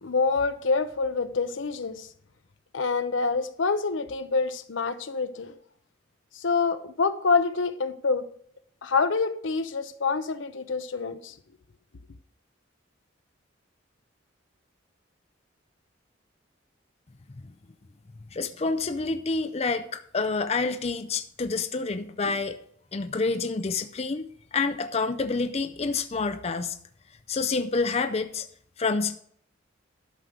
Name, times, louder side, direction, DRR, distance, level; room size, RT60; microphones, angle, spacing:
voice 1, 0.0-2.1 2.7-5.5 6.3-8.3 8.8-11.3, left 4 dB, 75° left, 0.7 m, -26 dB
voice 2, 18.3-22.6 22.9-26.8 27.3-28.5 28.8-29.2, left 4 dB, 35° left, 0.5 m, -28 dB
11.5 x 6.2 x 5.0 m
head